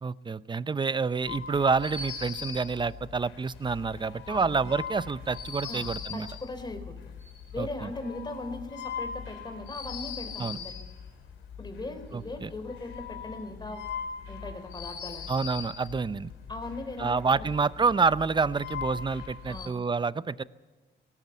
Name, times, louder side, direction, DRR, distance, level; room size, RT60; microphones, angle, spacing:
voice 1, 0.0-6.3 7.6-7.9 10.4-10.6 12.1-12.5 15.3-16.3 17.0-20.4, right 4 dB, 25° right, 17 dB, 0.6 m, -28 dB
sound 1, 1.3-19.7, left 6 dB, 80° left, 3.0 m, -41 dB
voice 2, 5.6-7.1 7.5-10.8 11.6-13.8 14.3-15.4 16.5-17.7 19.5-19.8, left 2 dB, 20° left, 8 dB, 3.7 m, -39 dB
18.5 x 18.0 x 8.2 m, 1.3 s
cardioid pair, 90°, 20 cm